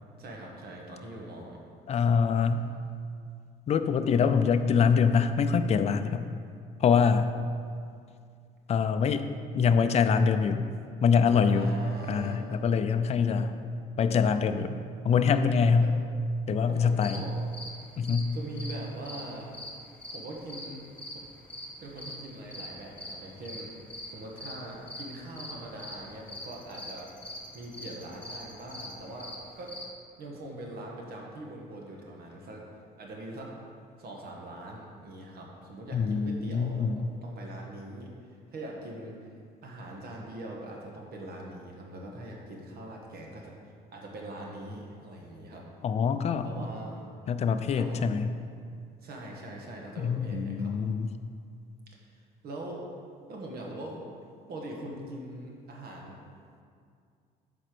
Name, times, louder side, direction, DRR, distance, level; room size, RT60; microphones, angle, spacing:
voice 1, 0.2-1.6 11.5-12.5 15.6-15.9 16.7-17.4 18.3-19.6 20.1-20.8 21.1-21.2 21.8-23.7 24.1-27.1 27.5-29.8 30.2-32.7 33.0-33.6 34.0-39.1 39.6-43.5 43.9-45.7 46.4-47.2 47.7-48.1 49.0-50.7 51.9-52.0 52.4-52.9 53.3-54.0 54.5-56.2, right 1 dB, 65° right, -1 dB, 1.5 m, -42 dB
voice 2, 1.9-2.7 3.7-6.3 6.8-7.3 8.7-9.2 9.5-10.6 11.0-11.7 12.1-13.6 14.0-14.8 15.0-15.9 16.5-17.2 18.0-18.4 35.9-37.0 45.8-46.5 47.3-48.3 50.0-51.1, left 6 dB, 40° left, 9 dB, 0.4 m, -24 dB
sound 1, 11.8-14.7, left 5 dB, 60° left, 0.8 m, -51 dB
sound 2, 16.8-29.9, left 1 dB, 5° left, 1.3 m, -43 dB
8.0 x 4.3 x 6.1 m, 2.3 s
cardioid pair, 110°, 17 cm